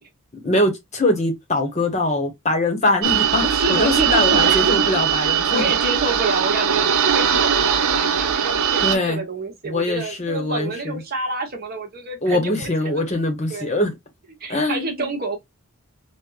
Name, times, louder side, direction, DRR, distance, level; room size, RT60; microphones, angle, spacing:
voice 1, 0.4-5.6 8.8-9.2 9.6-11.0 12.2-13.9 14.5-15.1, left 2 dB, 30° left, 0.8 m, -22 dB
sound 1, 3.0-9.0, right 8 dB, 80° right, 0.6 m, -20 dB
voice 2, 3.4-4.8 5.5-13.1 13.5-13.7 14.4-15.4, right 3 dB, 45° right, 1.0 m, -28 dB
5.0 x 2.1 x 2.3 m
head